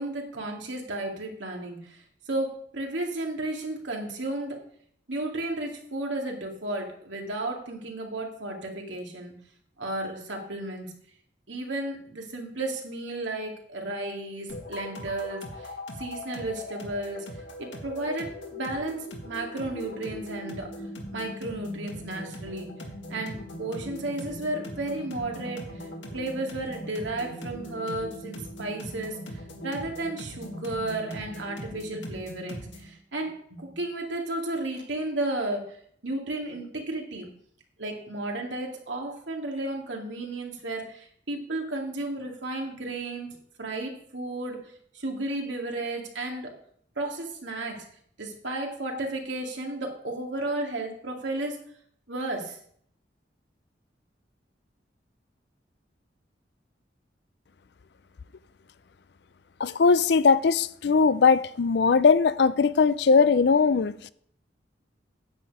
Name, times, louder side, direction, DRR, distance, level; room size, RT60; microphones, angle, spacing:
voice 1, 0.0-4.6 5.1-9.3 9.8-10.9 11.5-15.7 16.0-17.2 17.6-20.7 21.1-22.7 23.1-29.2 29.6-35.8 36.0-37.3 37.8-43.3 43.6-44.6 44.9-46.5 47.0-47.8 48.2-51.6 52.1-52.6, right 2 dB, 85° right, 2.4 m, -33 dB
sound 1, 14.5-32.9, equal, 90° left, 2.1 m, -40 dB
voice 2, 59.6-63.9, left 5 dB, 60° left, 0.4 m, -20 dB
9.8 x 8.5 x 4.8 m
head